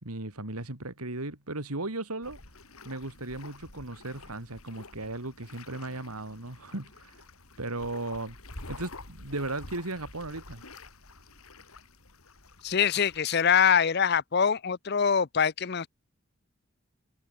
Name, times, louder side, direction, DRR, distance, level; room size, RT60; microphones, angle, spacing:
voice 1, 0.0-2.4 2.8-7.2 7.6-8.4 8.7-10.6, right 2 dB, 90° right, 3.0 m, -36 dB
sound 1, 2.2-13.2, left 2 dB, 80° left, 5.0 m, -48 dB
voice 2, 12.6-15.9, left 7 dB, 45° left, 0.5 m, -24 dB
head